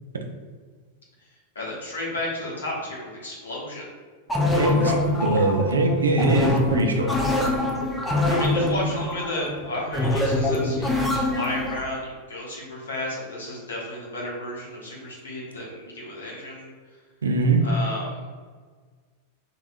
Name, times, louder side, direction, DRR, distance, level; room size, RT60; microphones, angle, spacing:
voice 1, 1.5-3.9 4.8-5.1 8.3-16.7 17.6-18.3, left 1 dB, 70° left, -4 dB, 1.3 m, -33 dB
sound 1, 4.3-11.8, left 1 dB, 5° left, 0.7 m, -24 dB
voice 2, 4.5-4.9 5.2-7.2 17.2-17.7, right 2 dB, 70° right, 4 dB, 0.5 m, -22 dB
4.5 x 3.5 x 2.4 m, 1.5 s
figure-of-eight pair, 90°, 0 cm